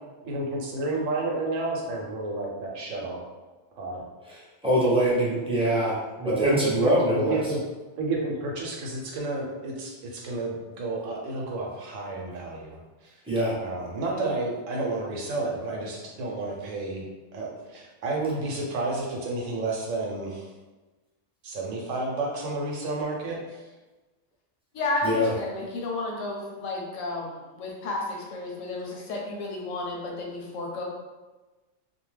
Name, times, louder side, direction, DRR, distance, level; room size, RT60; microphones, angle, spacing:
voice 1, 0.2-3.2 3.7-4.0 6.2-7.6 8.0-13.2 13.6-17.1 17.3-20.5 21.4-23.6 28.9-29.0, right 2 dB, 85° right, -1 dB, 1.0 m, -31 dB
voice 2, 4.6-7.4 13.3-13.5 25.0-25.3, equal, 5° right, -8 dB, 0.5 m, -23 dB
voice 3, 24.7-30.8, left 2 dB, 85° left, -1 dB, 1.0 m, -32 dB
2.6 x 2.2 x 3.1 m, 1.2 s
omnidirectional pair, 1.3 m